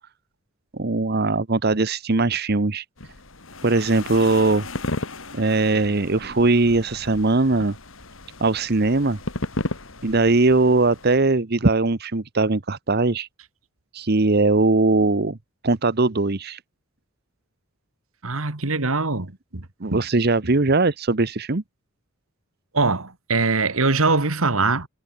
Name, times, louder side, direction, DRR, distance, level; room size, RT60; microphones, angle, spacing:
voice 1, 0.7-2.8 3.6-4.7 5.3-7.8 8.4-9.2 10.0-13.3 13.9-15.4 15.6-16.6 19.8-21.6, right 3 dB, 50° right, 1.0 m, -20 dB
sound 1, 3.0-11.2, left 2 dB, 65° left, 3.2 m, -34 dB
voice 2, 18.2-19.6 19.9-20.0 22.7-24.9, right 3 dB, 80° right, 2.1 m, -22 dB
head